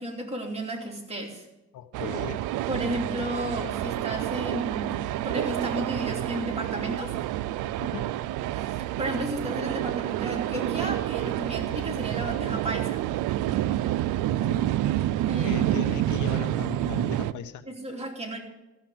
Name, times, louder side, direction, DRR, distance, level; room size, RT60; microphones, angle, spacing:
voice 1, 0.0-1.5 2.7-7.2 8.5-13.0 15.3-15.9 17.7-18.4, right 1 dB, 20° right, 0 dB, 3.0 m, -33 dB
voice 2, 1.7-2.4 7.8-8.2 14.2-14.8 15.4-17.6, left 9 dB, 80° left, 11 dB, 0.9 m, -38 dB
sound 1, 1.9-17.3, right 13 dB, 85° right, 0.5 m, -28 dB
14.5 x 5.9 x 7.8 m, 0.99 s
cardioid pair, 90°, 30 cm